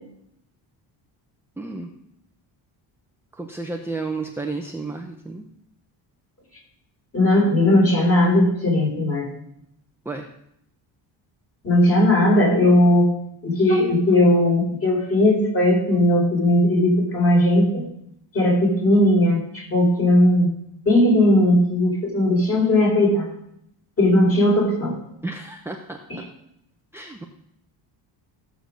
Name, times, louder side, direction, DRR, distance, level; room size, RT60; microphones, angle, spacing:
voice 1, 1.6-1.9 3.3-5.5 10.0-10.3 25.2-26.3 26.9-27.2, right 3 dB, 5° right, 2 dB, 0.7 m, -32 dB
voice 2, 7.1-9.3 11.6-13.1 13.4-17.9 18.3-20.5 20.9-23.3 24.0-25.0, left 1 dB, 30° left, -1 dB, 4.0 m, -18 dB
15.0 x 6.8 x 6.3 m, 0.77 s
cardioid pair, 145°, 43 cm